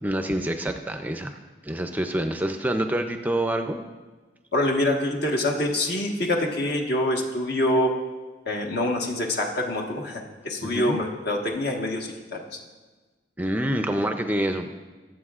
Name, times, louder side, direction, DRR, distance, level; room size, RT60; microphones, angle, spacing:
voice 1, 0.0-1.3 1.6-3.8 10.6-11.0 13.4-14.7, right 1 dB, 10° right, 6 dB, 0.4 m, -26 dB
voice 2, 4.5-7.9 8.4-12.6, left 1 dB, 60° left, 0 dB, 1.4 m, -25 dB
22.0 x 7.8 x 2.4 m, 1.3 s
head